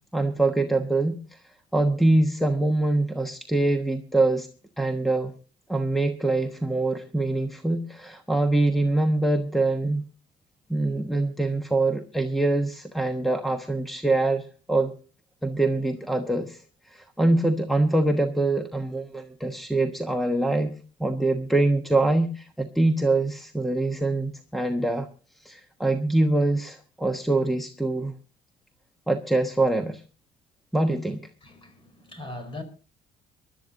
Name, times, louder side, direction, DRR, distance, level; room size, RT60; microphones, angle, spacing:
voice 1, 0.1-1.4 1.7-4.5 4.8-5.3 5.7-10.0 10.7-14.9 15.4-16.6 16.9-20.7 21.0-25.1 25.4-28.2 29.1-30.0 30.7-31.2, right 2 dB, ahead, 1.2 m, -24 dB
voice 2, 31.4-32.6, left 2 dB, 30° left, 4.7 m, -40 dB
24.5 x 12.5 x 2.7 m
cardioid pair, 110°, 17 cm